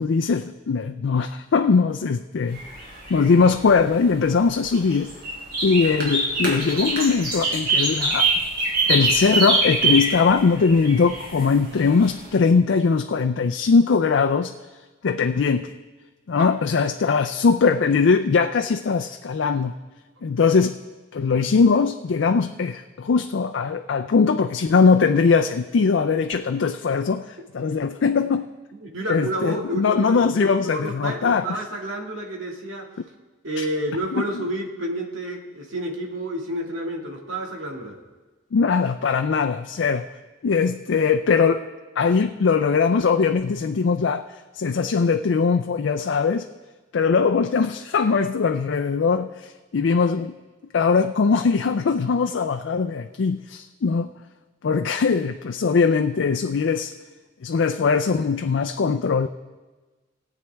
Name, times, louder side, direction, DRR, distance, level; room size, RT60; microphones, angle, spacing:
voice 1, 0.0-2.6 3.1-5.1 5.6-8.3 8.9-14.5 15.0-15.7 16.3-19.8 20.2-20.7 21.1-28.5 29.1-31.6 33.6-33.7 34.1-34.4 38.5-40.1 40.4-41.6 42.0-44.3 44.5-46.5 46.9-50.3 50.7-54.1 54.6-56.9 57.4-59.3, left 5 dB, 65° left, 7 dB, 0.4 m, -21 dB
sound 1, 2.5-12.3, right 2 dB, 50° right, 4.3 m, -24 dB
voice 2, 28.8-32.9 33.4-38.0, right 1 dB, 85° right, 0 dB, 1.9 m, -30 dB
20.5 x 8.3 x 3.4 m, 1.3 s
head